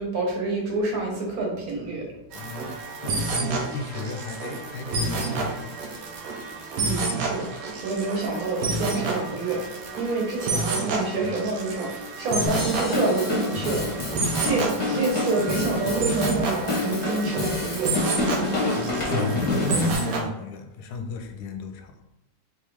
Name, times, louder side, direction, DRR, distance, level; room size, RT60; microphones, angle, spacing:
voice 1, 0.0-2.1 6.8-9.6 10.0-17.9, right 3 dB, 60° right, -1 dB, 1.5 m, -27 dB
voice 2, 2.3-2.8 3.0-5.8 19.1-22.0, left 3 dB, 75° left, 5 dB, 1.1 m, -34 dB
sound 1, 2.3-20.2, right 3 dB, 85° right, 1.4 m, -30 dB
Drum kit / Drum, 12.5-20.0, left 2 dB, 30° left, 0.9 m, -28 dB
4.1 x 3.1 x 3.4 m, 0.94 s
omnidirectional pair, 1.8 m